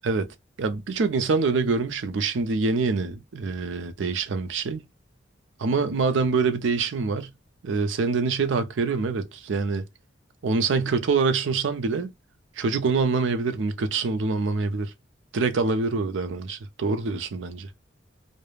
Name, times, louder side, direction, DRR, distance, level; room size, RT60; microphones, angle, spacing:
voice 1, 0.0-4.8 5.6-7.3 7.6-9.8 10.4-12.1 12.6-14.9 15.3-17.7, right 4 dB, 70° right, 0.4 m, -25 dB
2.3 x 2.1 x 3.2 m
head